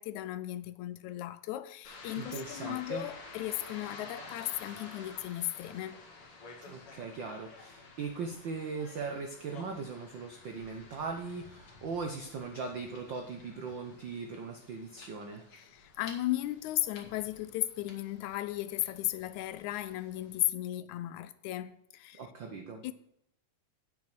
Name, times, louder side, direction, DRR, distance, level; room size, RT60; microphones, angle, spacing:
voice 1, 0.0-6.0 15.6-22.2 22.8-22.9, left 15 dB, 80° left, 1.9 m, -35 dB
sound 1, 1.8-20.4, left 3 dB, 50° left, 2.7 m, -52 dB
voice 2, 2.1-3.0 6.6-15.4 22.2-22.8, right 4 dB, 85° right, 1.0 m, -39 dB
9.6 x 6.9 x 5.8 m
omnidirectional pair, 3.5 m